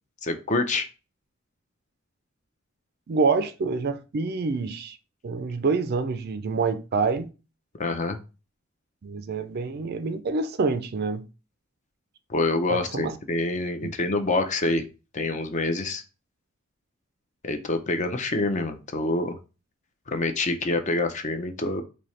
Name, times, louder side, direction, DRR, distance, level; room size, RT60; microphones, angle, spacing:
voice 1, 0.2-0.9 7.8-8.2 12.3-14.8 15.1-16.0 17.4-19.3 20.1-21.8, left 2 dB, 35° left, 0.5 m, -26 dB
voice 2, 3.1-5.0 5.2-7.3 9.0-11.2 12.7-13.2, right 4 dB, 50° right, 0.4 m, -26 dB
4.2 x 2.8 x 3.1 m
head